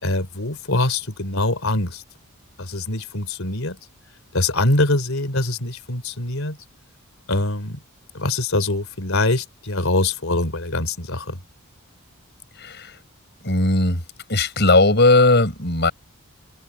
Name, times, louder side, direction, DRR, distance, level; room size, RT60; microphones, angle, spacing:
voice 1, 0.0-2.0 2.6-3.8 4.3-6.6 7.3-7.8 8.1-11.4, left 2 dB, 70° left, 3.5 m, -23 dB
voice 2, 12.6-12.9 13.4-14.0 14.3-15.9, left 2 dB, 50° left, 6.9 m, -17 dB
head